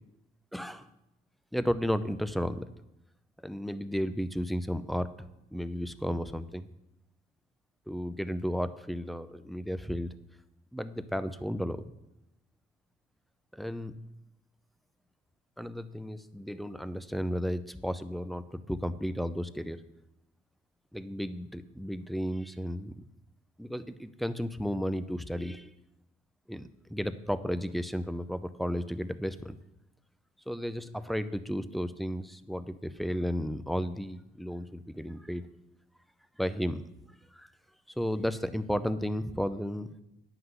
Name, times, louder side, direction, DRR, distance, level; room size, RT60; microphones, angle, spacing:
voice 1, 0.5-0.9 1.5-2.6 3.4-6.7 7.9-10.1 10.7-11.8 13.5-14.0 15.6-19.8 20.9-22.9 23.6-25.7 26.5-29.6 30.5-35.4 36.4-36.8 37.3-37.5 38.0-39.9, equal, ahead, 12 dB, 0.6 m, -33 dB
9.5 x 5.8 x 8.0 m, 0.87 s
cardioid pair, 90°, 20 cm